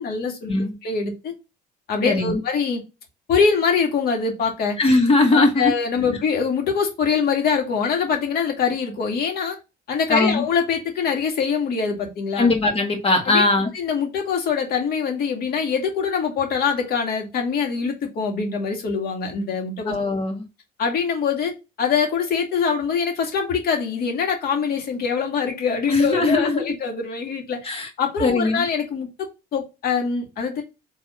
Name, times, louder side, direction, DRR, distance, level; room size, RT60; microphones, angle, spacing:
voice 1, 0.0-0.6 0.8-1.3 1.9-2.8 3.3-4.8 5.3-9.6 9.9-12.5 13.2-13.4 13.7-19.9 20.8-21.5 21.8-29.1 29.5-30.6, left 6 dB, 65° left, 2.3 m, -23 dB
voice 2, 2.0-2.4 4.8-5.7 10.1-10.4 12.4-13.7 19.9-20.4 25.9-26.7 27.6-27.9 28.2-28.7, left 2 dB, 35° left, 2.0 m, -20 dB
5.2 x 3.5 x 5.6 m
cardioid pair, 110°, 17 cm